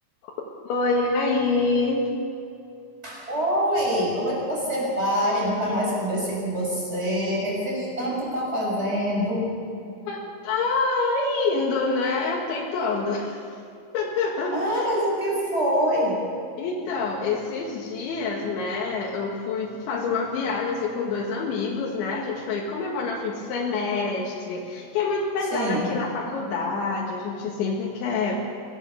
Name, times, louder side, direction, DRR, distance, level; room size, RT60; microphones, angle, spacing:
voice 1, 0.7-2.1 10.1-13.4 13.9-14.9 16.6-28.4, left 3 dB, 85° left, -3 dB, 4.2 m, -26 dB
voice 2, 3.0-9.5 14.5-16.2 25.5-25.8, equal, 15° right, -3 dB, 6.7 m, -25 dB
25.5 x 18.0 x 7.0 m, 2.5 s
omnidirectional pair, 5.2 m